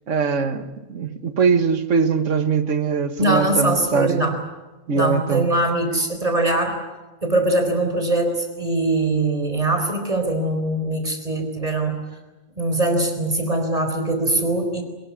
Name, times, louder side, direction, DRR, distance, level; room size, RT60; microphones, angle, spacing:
voice 1, 0.1-4.3 4.9-5.5, right 5 dB, 75° right, 1.8 m, -21 dB
voice 2, 3.2-4.3 4.9-6.8 7.2-12.0 12.6-14.8, right 2 dB, 30° right, 4.5 m, -22 dB
24.0 x 21.5 x 9.7 m
omnidirectional pair, 1.3 m